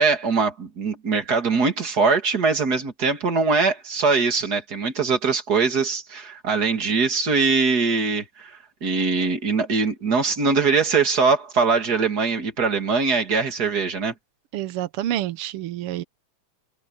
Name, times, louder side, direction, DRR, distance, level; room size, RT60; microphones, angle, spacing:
voice 1, 0.0-14.1, right 4 dB, 35° right, 2.7 m, -22 dB
voice 2, 14.5-16.0, right 12 dB, 85° right, 1.2 m, -28 dB
omnidirectional pair, 3.5 m